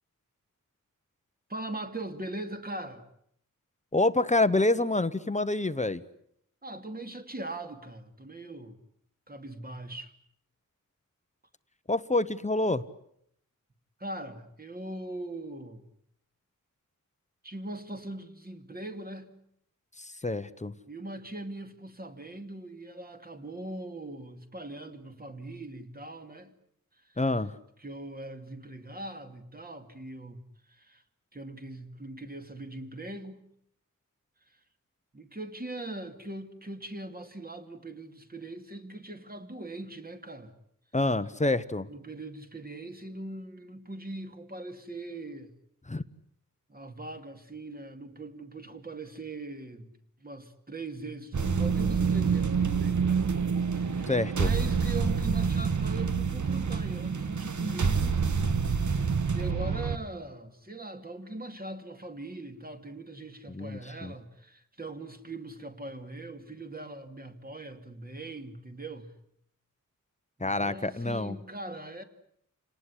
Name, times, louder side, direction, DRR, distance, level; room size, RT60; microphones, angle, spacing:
voice 1, 1.5-3.0 6.6-8.8 9.3-10.1 14.0-15.8 17.4-19.4 20.9-26.5 27.0-27.2 27.8-30.4 30.7-31.0 31.3-33.5 34.5-34.6 35.1-40.5 41.9-45.5 46.7-49.9 50.2-53.2 53.7-58.2 58.6-69.1 70.4-72.0, right 2 dB, 25° right, 2.7 m, -41 dB
voice 2, 3.9-6.0 11.9-12.8 20.0-20.7 27.2-27.5 40.9-41.9 45.9-46.0 54.1-54.5 63.5-64.1 70.4-71.4, left 2 dB, 20° left, 1.0 m, -27 dB
sound 1, 51.3-60.0, right 5 dB, 60° right, 1.5 m, -27 dB
28.5 x 19.0 x 9.9 m
wide cardioid pair, 110°, 33 cm